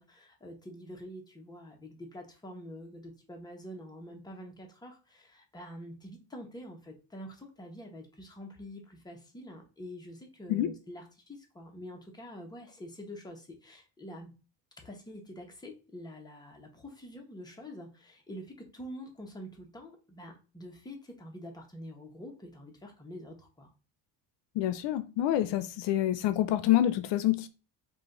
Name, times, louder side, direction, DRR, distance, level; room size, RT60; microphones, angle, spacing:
voice 1, 0.0-14.3 14.8-23.7, equal, 10° left, 1.0 m, -46 dB
voice 2, 24.6-27.5, left 13 dB, 75° left, 0.6 m, -27 dB
5.0 x 2.5 x 3.7 m
cardioid pair, 135°, 43 cm